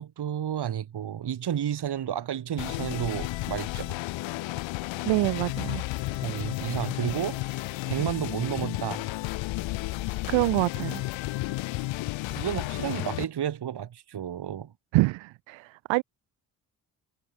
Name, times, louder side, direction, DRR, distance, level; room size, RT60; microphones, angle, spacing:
voice 1, 0.0-4.0 6.1-9.0 12.3-14.7, right 9 dB, 60° right, 3.4 m, -32 dB
sound 1, 2.6-13.2, left 19 dB, 80° left, 6.0 m, -32 dB
voice 2, 5.0-5.8 10.3-11.0 14.9-16.0, right 22 dB, 80° right, 2.4 m, -26 dB
hypercardioid pair, 45°, 45 cm